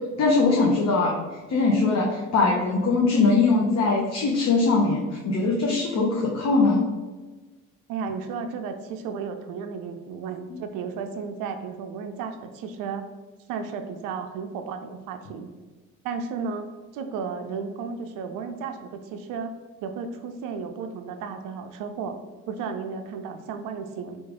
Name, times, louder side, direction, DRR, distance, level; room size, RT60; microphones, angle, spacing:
voice 1, 0.2-1.2 1.5-6.9, left 3 dB, 45° left, -2 dB, 0.7 m, -21 dB
voice 2, 7.9-13.1 13.5-15.5 16.0-16.7 16.9-19.5 19.8-22.2 22.5-24.2, right 5 dB, 60° right, 7 dB, 0.5 m, -33 dB
3.1 x 2.4 x 3.6 m, 1.3 s
hypercardioid pair, 50°, 38 cm